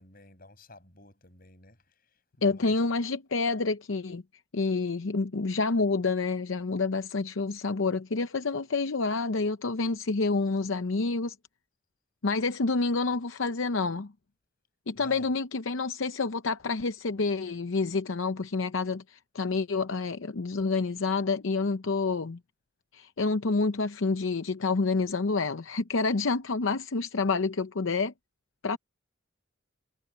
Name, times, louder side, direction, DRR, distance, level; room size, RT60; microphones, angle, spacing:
voice 1, 0.0-2.8 14.9-15.3, left 2 dB, 45° left, 7.7 m, -52 dB
voice 2, 2.4-4.2 4.5-11.4 12.2-14.1 14.9-22.4 22.9-28.1 28.6-28.8, left 3 dB, 70° left, 0.7 m, -28 dB
head